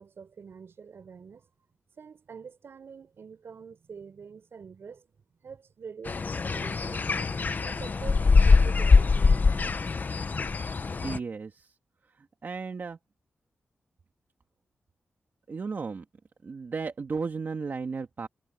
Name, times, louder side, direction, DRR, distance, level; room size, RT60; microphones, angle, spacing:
voice 1, 0.0-1.5 2.0-5.1 5.4-7.2 7.6-9.8, right 6 dB, 70° right, 5.1 m, -46 dB
sound 1, 6.1-11.2, left 4 dB, 45° left, 1.0 m, -23 dB
voice 2, 11.0-11.7 12.2-13.0 15.5-16.0 16.4-18.3, right 4 dB, 50° right, 1.9 m, -34 dB
wide cardioid pair, 95°, 4 cm